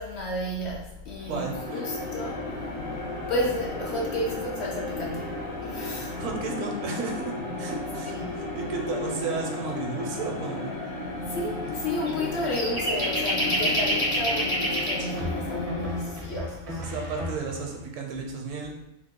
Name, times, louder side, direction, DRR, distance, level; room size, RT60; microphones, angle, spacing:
voice 1, 0.0-2.7 3.3-6.1 8.0-8.5 11.3-16.8, left 1 dB, 65° left, -2 dB, 0.7 m, -32 dB
sound 1, 1.1-16.4, left 2 dB, 80° left, 1.1 m, -34 dB
voice 2, 1.3-1.9 6.2-7.2 7.6-8.2 8.5-10.7 16.8-18.7, right 4 dB, 75° right, 1 dB, 0.9 m, -33 dB
sound 2, 12.1-12.2 12.5-15.0, equal, 30° left, 0.4 m, -26 dB
sound 3, 12.8-13.1 15.2-17.8, left 1 dB, 45° right, 0.4 m, -36 dB
2.9 x 2.0 x 3.6 m, 0.89 s
omnidirectional pair, 1.4 m